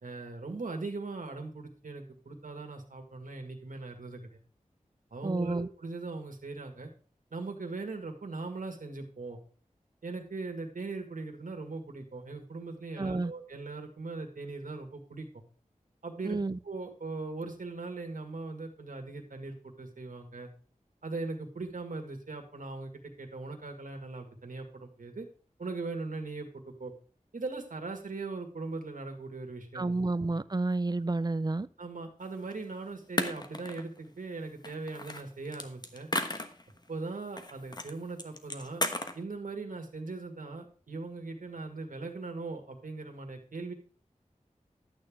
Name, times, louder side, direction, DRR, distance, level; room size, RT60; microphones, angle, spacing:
voice 1, 0.0-4.2 5.1-6.9 7.3-9.4 10.0-15.4 16.0-16.4 16.6-20.5 21.0-25.3 25.6-26.9 27.3-29.9 31.8-36.1 36.9-38.8 39.1-43.7, right 3 dB, 85° right, 4 dB, 1.9 m, -40 dB
voice 2, 5.2-5.7 13.0-13.3 16.2-16.6 29.7-31.7, right 2 dB, 30° right, 15 dB, 0.5 m, -30 dB
sound 1, 32.5-32.6 33.2-34.0 34.6-36.8 37.4-37.9 38.2-39.2, left 2 dB, 30° left, 1.1 m, -34 dB
11.5 x 8.8 x 3.7 m, 0.40 s
wide cardioid pair, 60°, 13 cm